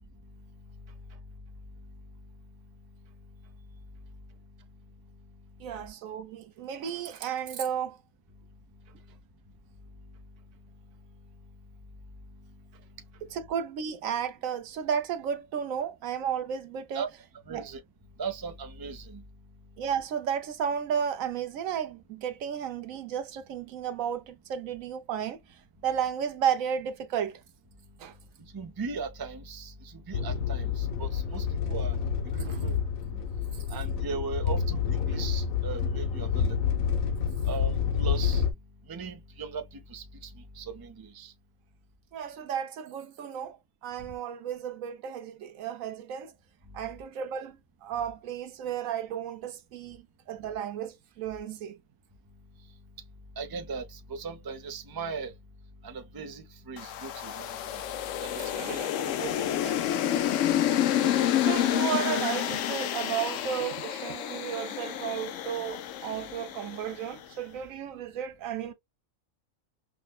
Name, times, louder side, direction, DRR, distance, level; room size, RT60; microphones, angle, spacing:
voice 1, 5.6-8.0 13.3-17.0 17.5-17.7 19.8-27.4 28.0-28.2 42.1-46.3 46.7-51.8 58.5-58.9 60.9-61.1 61.4-68.7, right 8 dB, 80° right, 1.1 m, -33 dB
voice 2, 17.5-17.8 18.2-19.2 28.4-32.0 32.3-32.7 33.1-33.2 33.7-36.6 37.4-38.4 38.9-41.3 53.4-55.3 55.8-57.8 58.2-58.8 59.1-59.8, right 4 dB, 30° right, 0.4 m, -38 dB
sound 1, 30.1-38.5, left 7 dB, 90° left, 1.2 m, -28 dB
sound 2, 56.8-67.1, left 11 dB, 70° left, 0.9 m, -29 dB
5.8 x 2.1 x 2.3 m
omnidirectional pair, 1.4 m